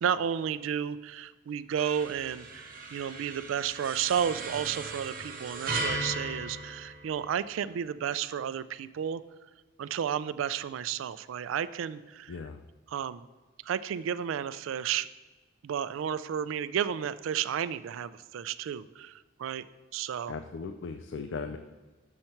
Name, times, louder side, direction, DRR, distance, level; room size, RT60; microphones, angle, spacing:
voice 1, 0.0-9.2 9.8-12.4 12.9-13.3 13.6-15.1 15.6-19.7 19.9-20.3, right 8 dB, 85° right, 16 dB, 0.3 m, -32 dB
sound 1, 1.7-7.5, right 2 dB, 45° right, 0.8 m, -37 dB
voice 2, 12.3-12.6 20.3-21.6, left 5 dB, 65° left, 8 dB, 0.4 m, -37 dB
6.5 x 5.8 x 4.4 m, 1.3 s
head